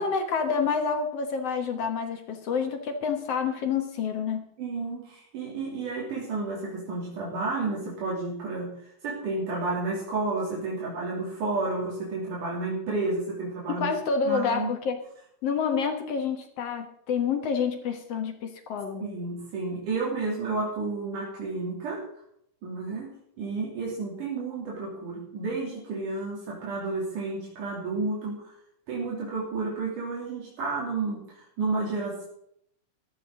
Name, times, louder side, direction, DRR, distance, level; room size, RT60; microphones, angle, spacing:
voice 1, 0.0-4.4 13.8-15.0 15.4-19.1, left 6 dB, 60° left, 5 dB, 2.2 m, -28 dB
voice 2, 4.6-13.9 14.3-14.7 19.0-22.0 22.6-28.5 28.9-32.3, right 3 dB, 85° right, -5 dB, 4.5 m, -31 dB
14.5 x 13.5 x 3.8 m, 0.71 s
omnidirectional pair, 3.6 m